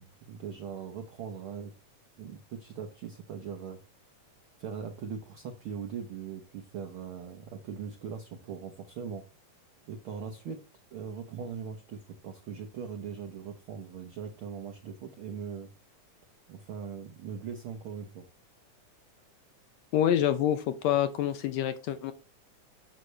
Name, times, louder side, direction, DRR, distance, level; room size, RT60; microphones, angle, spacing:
voice 1, 0.0-1.7 2.2-3.8 4.6-9.2 9.9-10.6 10.9-15.7 16.5-18.2, right 7 dB, 70° right, 4 dB, 1.2 m, -40 dB
voice 2, 19.9-22.1, left 10 dB, 75° left, 10 dB, 1.7 m, -27 dB
8.2 x 6.4 x 3.2 m, 0.33 s
omnidirectional pair, 3.6 m